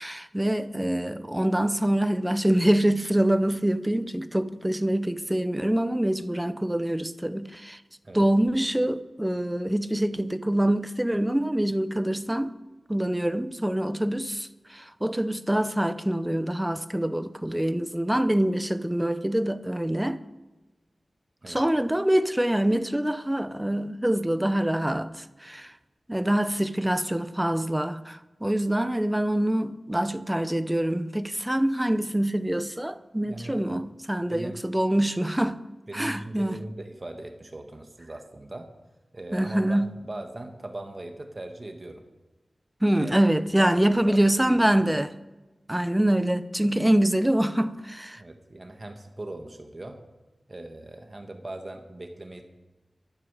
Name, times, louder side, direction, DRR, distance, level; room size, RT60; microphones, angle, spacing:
voice 1, 0.0-7.8 8.1-12.5 12.9-20.2 21.5-25.1 25.4-25.7 26.1-35.6 35.9-36.6 39.3-39.9 42.8-45.1 45.7-48.2, right 1 dB, 10° right, 0.7 m, -25 dB
voice 2, 33.3-33.8 34.3-34.6 35.9-38.7 39.1-42.0 42.9-43.1 43.5-44.9 48.1-50.0 50.5-52.4, right 1 dB, 35° right, 1.4 m, -40 dB
13.0 x 8.9 x 7.4 m
wide cardioid pair, 85°, 0 cm